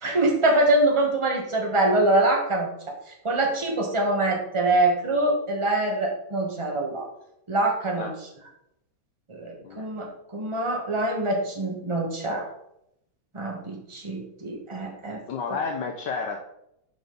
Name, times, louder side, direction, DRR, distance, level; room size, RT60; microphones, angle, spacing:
voice 1, 0.0-2.7 3.2-7.1 7.5-8.1 9.3-12.5 13.3-15.2 15.5-15.6, right 2 dB, 20° right, 0 dB, 1.2 m, -24 dB
voice 2, 15.3-16.4, left 5 dB, 70° left, 3 dB, 1.2 m, -30 dB
7.1 x 5.1 x 3.9 m, 0.78 s
omnidirectional pair, 2.2 m